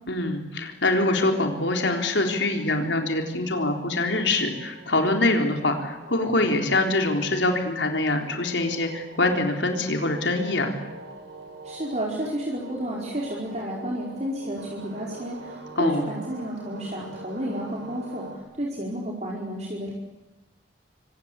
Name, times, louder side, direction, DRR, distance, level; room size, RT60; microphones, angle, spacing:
voice 1, 0.1-10.7 15.8-16.0, left 2 dB, 80° left, 3 dB, 3.9 m, -24 dB
sound 1, 1.9-18.4, right 2 dB, 80° right, 6.9 m, -44 dB
voice 2, 11.6-19.9, equal, 35° right, -2 dB, 4.9 m, -31 dB
27.5 x 25.0 x 8.3 m, 1.1 s
head